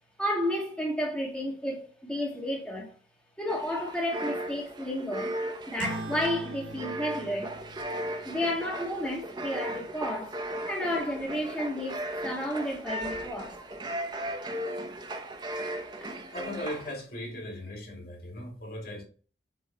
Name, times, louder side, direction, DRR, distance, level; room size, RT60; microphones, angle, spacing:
voice 1, 0.2-2.9 3.4-5.4 5.7-7.6 8.2-10.3 10.7-13.6 14.9-15.0, left 1 dB, 5° left, 1.5 m, -32 dB
sound 1, 3.5-16.9, right 1 dB, 25° right, 0.8 m, -37 dB
sound 2, 5.8-10.6, right 2 dB, 75° right, 1.2 m, -43 dB
voice 2, 16.3-19.0, left 1 dB, 60° left, 2.4 m, -38 dB
8.1 x 3.8 x 4.2 m
head